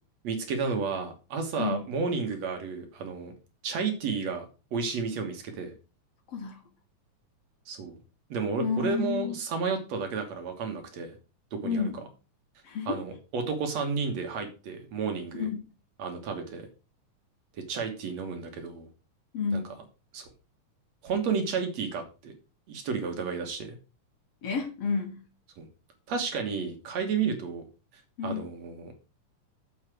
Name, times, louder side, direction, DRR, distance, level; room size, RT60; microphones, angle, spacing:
voice 1, 0.2-3.3 3.6-5.7 7.7-8.0 8.3-11.2 11.5-11.8 12.9-15.5 16.0-16.7 17.5-18.9 19.5-19.6 20.1-20.3 21.0-22.3 22.7-23.8 25.6-25.7 26.1-27.6 28.2-28.9, right 5 dB, 60° right, 4 dB, 2.4 m, -32 dB
voice 2, 6.3-6.7 8.6-9.4 11.6-12.0 12.6-13.0 15.3-15.7 19.3-19.7 24.4-25.3 28.2-28.5, left 5 dB, 60° left, 5 dB, 2.0 m, -31 dB
7.4 x 5.6 x 6.0 m, 0.32 s
omnidirectional pair, 3.7 m